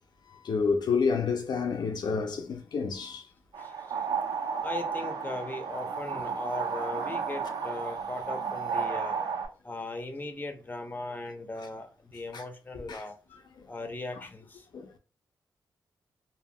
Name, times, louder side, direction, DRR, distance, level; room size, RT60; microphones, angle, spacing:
voice 1, 0.3-3.2 12.3-12.4 12.9-13.0 13.6-13.7 14.7-15.0, left 5 dB, 65° left, 0.5 m, -29 dB
sound 1, 3.5-9.5, right 6 dB, 70° right, 0.8 m, -33 dB
voice 2, 4.6-9.3 9.6-13.1 13.7-14.6, left 2 dB, 25° left, 0.7 m, -38 dB
3.5 x 2.2 x 2.2 m
cardioid pair, 65°, 8 cm